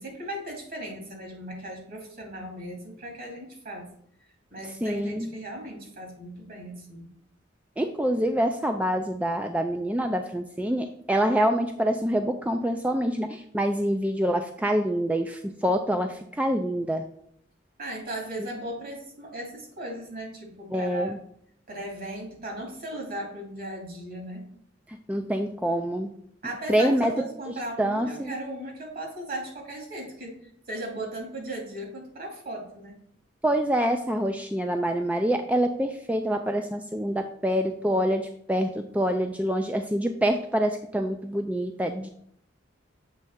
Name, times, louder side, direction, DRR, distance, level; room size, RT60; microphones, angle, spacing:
voice 1, 0.0-3.9 4.5-7.1 17.8-21.2 21.7-24.4 26.4-30.4 30.7-33.0, right 1 dB, 50° right, 0 dB, 2.5 m, -37 dB
voice 2, 4.8-5.3 7.8-17.0 20.7-21.2 25.1-26.1 26.7-27.1 27.8-28.3 33.4-42.1, equal, 5° right, 5 dB, 0.3 m, -26 dB
7.3 x 3.3 x 5.5 m, 0.68 s
head